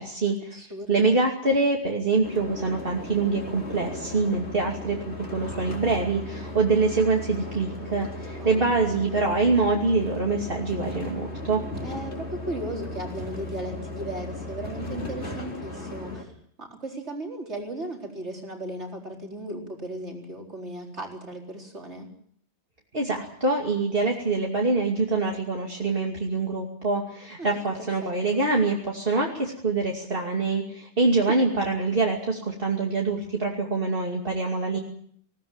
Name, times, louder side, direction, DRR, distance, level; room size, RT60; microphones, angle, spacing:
voice 1, 0.0-11.6 22.9-34.8, right 3 dB, 55° right, 0 dB, 2.8 m, -25 dB
voice 2, 0.5-1.1 8.3-8.7 11.8-16.3 16.6-22.1 27.4-28.4 31.2-31.5, right 1 dB, 75° right, 1 dB, 4.7 m, -36 dB
sound 1, 2.2-16.2, left 1 dB, 75° left, 4.1 m, -36 dB
19.5 x 18.0 x 8.9 m, 0.62 s
omnidirectional pair, 1.2 m